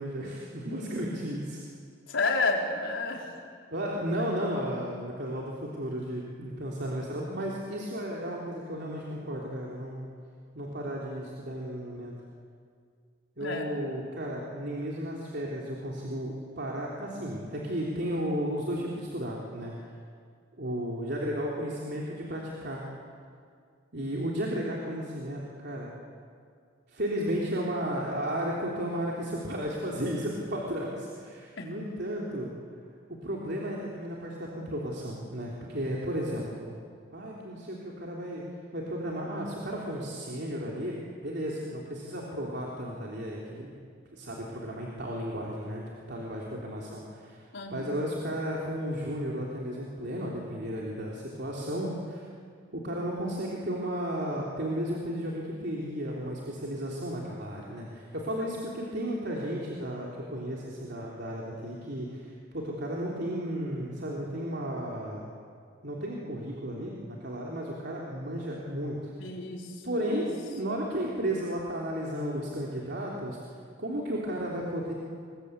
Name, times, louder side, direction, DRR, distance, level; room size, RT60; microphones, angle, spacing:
voice 1, 0.0-1.6 3.7-10.1 10.6-12.1 13.4-19.7 20.6-22.8 23.9-25.9 26.9-32.5 33.2-36.7 37.1-38.4 38.7-43.7 44.1-47.4 47.7-52.2 52.7-62.2 62.5-65.2 65.8-69.1 69.8-73.4 73.8-74.9, equal, 60° right, -3 dB, 3.5 m, -34 dB
voice 2, 2.1-3.4 13.4-13.7 31.6-31.7 47.5-48.1 69.2-70.2, left 3 dB, 80° left, 0 dB, 4.5 m, -31 dB
29.5 x 22.0 x 8.4 m, 2.2 s
head